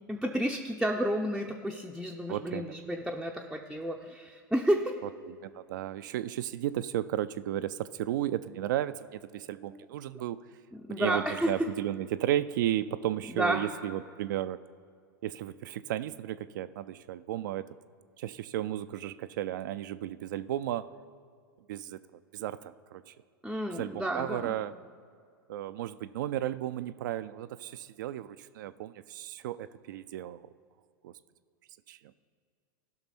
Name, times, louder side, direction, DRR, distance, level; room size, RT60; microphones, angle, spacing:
voice 1, 0.1-5.0 9.7-9.8 10.7-11.5 13.3-13.7 23.4-24.5, equal, ahead, 0 dB, 0.6 m, -31 dB
voice 2, 2.3-2.6 5.2-10.4 10.9-14.6 15.2-17.6 18.2-20.8 21.7-22.0 22.3-23.1 23.8-24.7 25.5-30.5 31.0-31.1 31.9-32.0, right 12 dB, 65° right, 13 dB, 0.4 m, -34 dB
15.5 x 6.0 x 4.2 m, 2.1 s
hypercardioid pair, 95°, 11 cm